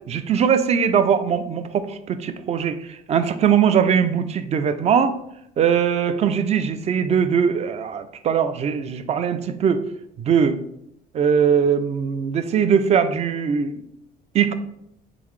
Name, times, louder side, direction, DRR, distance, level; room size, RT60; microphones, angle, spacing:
voice 1, 0.1-5.2 5.6-9.8 10.2-10.6 11.1-13.8 14.3-14.5, right 7 dB, 40° right, 11 dB, 0.4 m, -20 dB
3.8 x 3.5 x 3.1 m, 0.77 s
cardioid pair, 110°, 17 cm